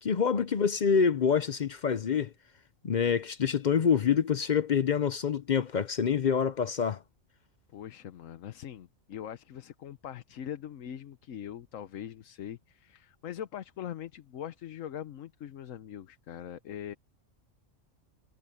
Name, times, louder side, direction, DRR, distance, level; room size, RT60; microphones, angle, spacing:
voice 1, 0.0-2.3 2.8-7.0, left 7 dB, 50° left, 0.6 m, -26 dB
voice 2, 7.7-16.9, left 10 dB, 85° left, 1.2 m, -42 dB
omnidirectional pair, 1.3 m